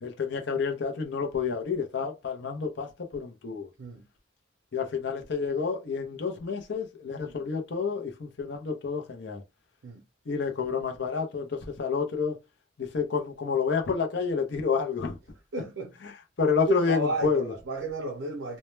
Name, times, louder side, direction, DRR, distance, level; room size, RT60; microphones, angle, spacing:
voice 1, 0.0-3.7 4.7-9.4 10.3-12.4 12.8-15.2 16.0-17.5, left 5 dB, 65° left, 0.6 m, -29 dB
voice 2, 15.5-15.9 16.7-18.6, right 3 dB, 80° right, 0.5 m, -32 dB
2.1 x 2.1 x 3.0 m
head